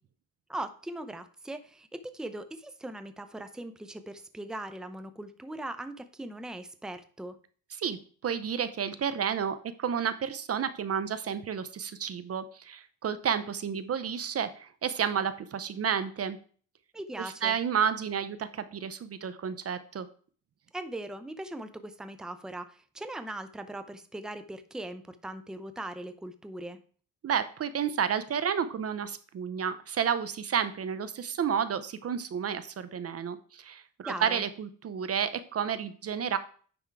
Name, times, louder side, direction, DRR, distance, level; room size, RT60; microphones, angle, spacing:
voice 1, 0.5-7.4 16.9-17.6 20.7-26.8 34.0-34.4, right 1 dB, ahead, 10 dB, 0.6 m, -40 dB
voice 2, 7.8-16.4 17.4-20.1 27.2-36.4, right 7 dB, 45° right, 13 dB, 0.6 m, -31 dB
9.7 x 3.6 x 4.6 m, 0.44 s
cardioid pair, 95°, 34 cm